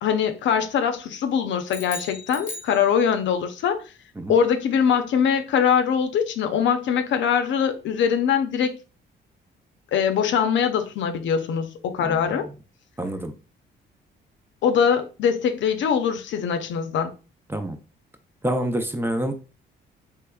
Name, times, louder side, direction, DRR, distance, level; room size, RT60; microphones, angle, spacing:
voice 1, 0.0-3.8 4.3-8.8 9.9-12.5 14.6-17.1, left 7 dB, 70° left, 0.6 m, -22 dB
sound 1, 1.7-3.4, left 3 dB, 15° left, 1.2 m, -38 dB
voice 2, 12.0-12.4 13.0-13.3 17.5-17.8 18.4-19.3, right 1 dB, 10° right, 0.5 m, -27 dB
3.4 x 3.1 x 2.3 m
cardioid pair, 90°, 20 cm